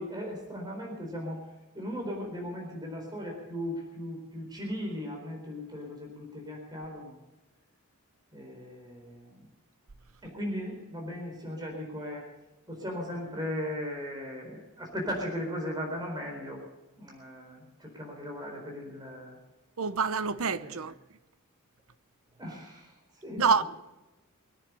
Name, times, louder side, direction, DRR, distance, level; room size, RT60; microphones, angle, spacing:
voice 1, 0.0-1.5 1.7-7.2 8.3-9.5 10.2-12.3 12.7-16.6 17.0-19.4 20.6-20.8 22.4-23.0 23.2-23.6, equal, 20° right, 4.3 m, -37 dB
voice 2, 19.8-20.9 23.4-23.6, right 5 dB, 65° right, 0.8 m, -26 dB
24.0 x 10.0 x 5.5 m
head